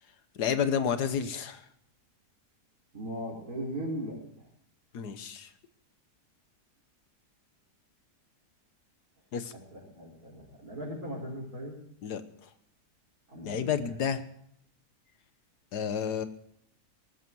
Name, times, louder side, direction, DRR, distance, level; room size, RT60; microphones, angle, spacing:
voice 1, 0.4-1.6 4.9-5.5 9.3-9.5 12.0-12.2 13.4-14.2 15.7-16.3, left 7 dB, 80° left, 11 dB, 1.7 m, -30 dB
voice 2, 2.9-4.2 9.5-11.8 13.3-13.9, right 1 dB, 60° right, -7 dB, 5.1 m, -38 dB
18.5 x 14.0 x 4.6 m, 0.69 s
omnidirectional pair, 1.7 m